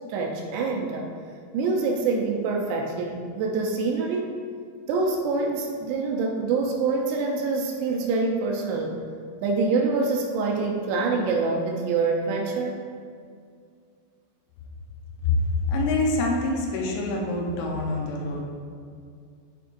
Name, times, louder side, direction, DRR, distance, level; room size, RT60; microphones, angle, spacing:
voice 1, 0.1-1.0 1.5-4.3 4.9-8.9 9.4-12.7, right 4 dB, 80° right, 0 dB, 2.5 m, -25 dB
voice 2, 15.7-18.4, left 2 dB, 85° left, -1 dB, 3.3 m, -25 dB
12.0 x 4.6 x 2.5 m, 2.2 s
omnidirectional pair, 5.2 m